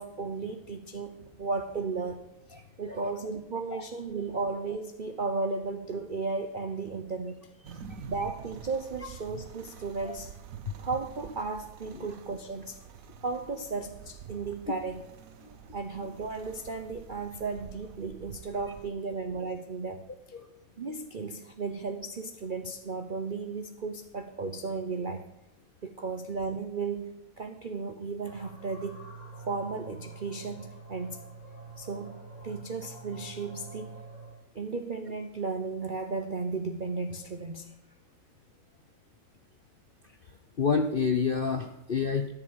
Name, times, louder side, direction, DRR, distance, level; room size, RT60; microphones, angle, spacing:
voice 1, 0.0-2.2 2.8-7.4 8.1-10.3 10.8-12.8 13.2-15.0 15.7-20.0 20.8-25.2 25.8-29.0 29.5-31.2 31.8-33.9 34.5-37.7, right 4 dB, 85° right, 7 dB, 0.4 m, -35 dB
voice 2, 2.5-3.1 3.7-3.8 7.7-8.0 10.0-10.1 10.6-10.7 11.9-12.1 20.3-20.5 40.6-42.3, left 5 dB, 60° left, 5 dB, 0.5 m, -29 dB
sound 1, 7.6-18.9, right 9 dB, 60° right, 0.9 m, -47 dB
sound 2, 28.2-34.4, right 4 dB, 15° right, 5.6 m, -46 dB
13.5 x 7.2 x 6.2 m, 0.95 s
omnidirectional pair, 2.1 m